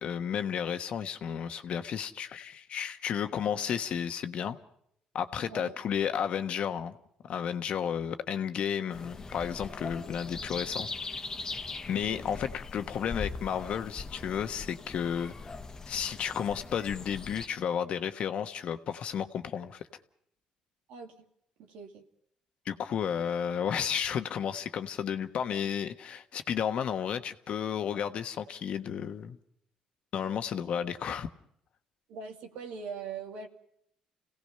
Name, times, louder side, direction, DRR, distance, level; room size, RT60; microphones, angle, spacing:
voice 1, 0.0-4.6 5.1-7.0 7.2-10.9 11.9-15.5 15.9-19.8 22.6-29.4 30.1-31.3, left 8 dB, 60° left, 9 dB, 1.2 m, -32 dB
sound 1, 8.9-17.5, left 4 dB, 30° left, 1.4 m, -41 dB
voice 2, 21.6-22.0 32.1-33.5, right 5 dB, 80° right, 4 dB, 2.3 m, -41 dB
27.5 x 17.5 x 5.7 m, 0.70 s
supercardioid pair, 75°, 2 cm